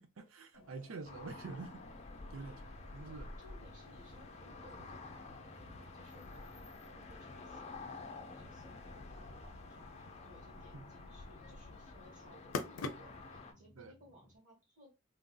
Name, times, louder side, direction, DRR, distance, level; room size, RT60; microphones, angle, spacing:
voice 1, 0.0-1.8 2.3-3.3 10.7-10.9 13.8-13.9, right 3 dB, 80° right, 0.6 m, -47 dB
sound 1, 0.5-13.4, left 3 dB, 80° left, 0.5 m, -50 dB
sound 2, 1.0-13.5, left 3 dB, 30° left, 0.5 m, -51 dB
voice 2, 2.9-14.9, equal, 55° right, 1.5 m, -62 dB
sound 3, 3.6-14.4, equal, 10° left, 1.1 m, -62 dB
3.2 x 2.6 x 2.3 m
head